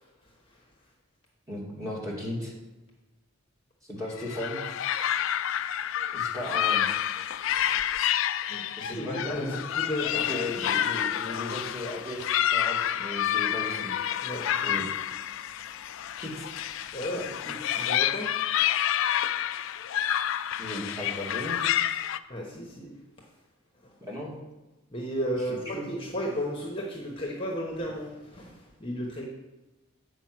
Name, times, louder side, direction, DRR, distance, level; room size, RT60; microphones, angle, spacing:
voice 1, 1.5-2.5 3.8-4.7 6.1-6.9 8.8-9.6 10.1-13.9 14.7-14.8 16.2-16.5 17.1-17.2 20.6-21.6 24.0-24.3 25.5-26.0, left 1 dB, 15° right, -4 dB, 2.1 m, -36 dB
sound 1, 4.2-22.2, left 10 dB, 65° left, 0.3 m, -29 dB
voice 2, 8.4-10.4 14.2-14.9 16.9-18.4 22.3-22.9 24.9-29.3, equal, 25° left, -1 dB, 1.0 m, -34 dB
8.0 x 5.0 x 6.0 m, 1.1 s
head